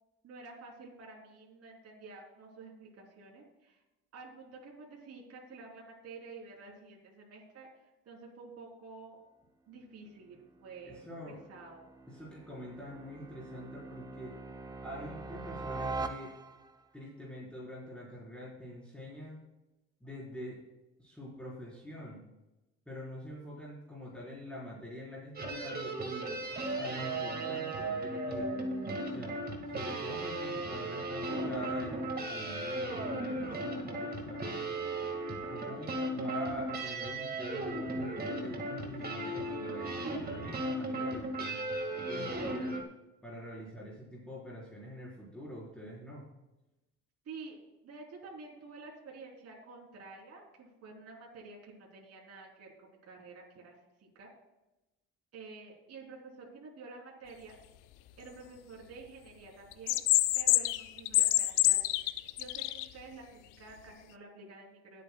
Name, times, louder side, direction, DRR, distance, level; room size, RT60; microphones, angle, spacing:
voice 1, 0.2-3.8 4.1-9.2 9.7-11.9 47.3-47.6 47.8-54.3 55.3-57.6 58.2-60.0 60.4-61.8 62.4-65.0, right 3 dB, 50° right, -2 dB, 3.4 m, -50 dB
sound 1, 10.4-16.8, right 3 dB, 15° right, 0.7 m, -43 dB
voice 2, 10.9-11.4 12.1-14.4 14.8-16.3 16.9-19.4 20.0-20.6 21.0-22.2 22.9-26.3 26.7-28.5 29.1-29.3 29.7-34.6 35.4-41.6 41.9-42.8 43.2-46.2, left 1 dB, 5° left, -7 dB, 4.2 m, -45 dB
sound 2, 25.3-42.8, right 2 dB, 30° right, 1.8 m, -36 dB
sound 3, 59.7-62.8, left 17 dB, 80° left, 0.6 m, -26 dB
21.0 x 8.4 x 2.3 m, 1.0 s
cardioid pair, 100°, 31 cm